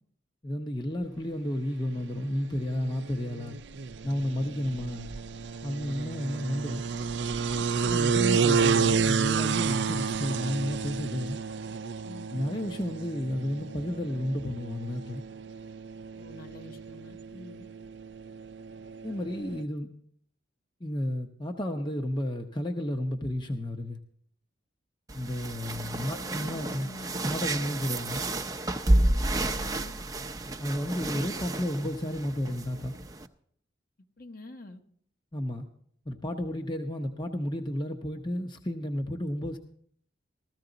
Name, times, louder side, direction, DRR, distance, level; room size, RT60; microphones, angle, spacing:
voice 1, 0.4-3.6 4.0-5.1 5.6-6.9 7.8-11.4 12.3-15.2 19.0-19.9 20.8-24.0 25.1-26.9 27.2-28.3 30.6-33.0 35.3-35.7 36.1-39.6, left 1 dB, 25° left, 5 dB, 0.8 m, -32 dB
sound 1, 1.6-19.6, right 5 dB, 65° right, 0.5 m, -31 dB
voice 2, 12.0-12.4 16.2-17.7 26.1-27.4 29.0-29.9 34.2-34.8, left 1 dB, 45° left, 5 dB, 1.2 m, -46 dB
sound 2, 25.1-33.3, right 1 dB, 20° right, 0.6 m, -30 dB
15.0 x 14.5 x 4.0 m, 0.63 s
head